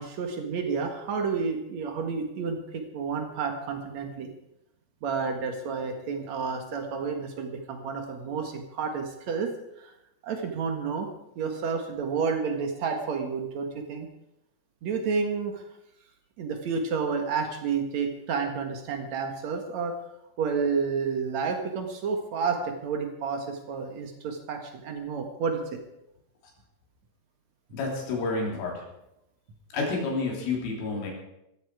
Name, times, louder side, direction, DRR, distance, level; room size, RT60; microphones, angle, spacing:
voice 1, 0.0-4.3 5.0-9.5 9.8-9.9 10.2-11.1 11.3-14.1 14.8-15.6 16.4-19.9 20.4-25.8, right 5 dB, 80° right, 4 dB, 1.5 m, -30 dB
voice 2, 27.7-28.8 29.7-31.1, left 3 dB, 80° left, -1 dB, 6.1 m, -29 dB
18.0 x 14.5 x 4.9 m, 0.85 s
omnidirectional pair, 5.8 m